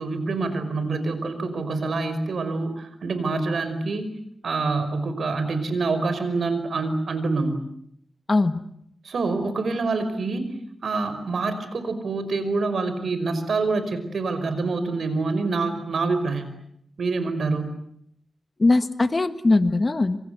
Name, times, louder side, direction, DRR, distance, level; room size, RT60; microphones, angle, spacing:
voice 1, 0.0-4.2 4.4-7.6 9.0-10.6 10.8-16.5 17.0-17.7, right 3 dB, 70° right, 11 dB, 5.3 m, -26 dB
voice 2, 8.3-8.6 18.6-20.2, left 2 dB, 35° left, 11 dB, 1.5 m, -20 dB
27.5 x 27.0 x 8.1 m, 0.71 s
wide cardioid pair, 85°, 0 cm